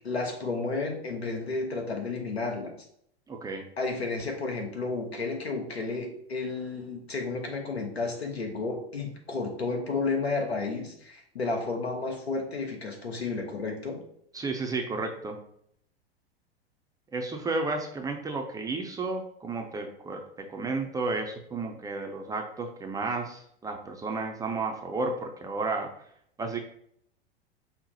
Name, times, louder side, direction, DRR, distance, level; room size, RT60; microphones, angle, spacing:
voice 1, 0.0-2.7 3.8-14.0, left 3 dB, 85° left, 2 dB, 1.1 m, -32 dB
voice 2, 3.3-3.6 14.3-15.4 17.1-20.2 20.5-25.9 26.4-26.6, right 3 dB, 10° right, 2 dB, 0.4 m, -32 dB
5.5 x 2.1 x 4.0 m, 0.69 s
figure-of-eight pair, 90°, 31 cm